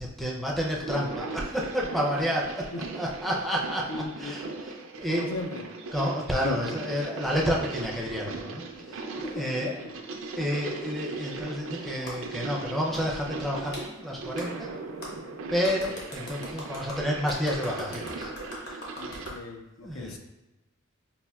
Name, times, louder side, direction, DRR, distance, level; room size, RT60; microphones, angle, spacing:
voice 1, 0.0-2.7 2.9-4.4 5.0-5.3 5.9-9.0 9.3-9.8 10.4-14.7 15.0-15.2 15.5-18.3 19.8-20.2, equal, ahead, -3 dB, 0.4 m, -30 dB
sound 1, 0.7-19.4, right 3 dB, 65° right, 0.4 m, -39 dB
voice 2, 3.9-4.4 5.1-5.7 6.4-6.6 8.9-9.9 19.0-20.2, left 3 dB, 85° left, 3 dB, 0.5 m, -37 dB
Clapping, 12.1-12.2 12.9-13.0 13.7-13.9 14.4-14.5 15.0-15.1 15.6-19.4, left 1 dB, 55° left, 0.9 m, -40 dB
5.4 x 2.5 x 2.3 m, 1.0 s
head